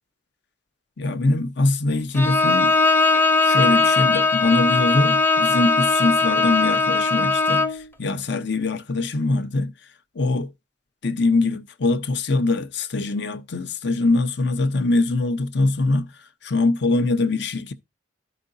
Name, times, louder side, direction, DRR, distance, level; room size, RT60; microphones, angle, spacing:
voice 1, 1.0-2.7 3.4-9.7 10.1-10.5 11.0-16.1 16.4-17.7, left 2 dB, 65° left, 0.7 m, -22 dB
Bowed string instrument, 2.1-7.8, left 3 dB, 10° left, 0.6 m, -19 dB
13.5 x 5.1 x 2.5 m
head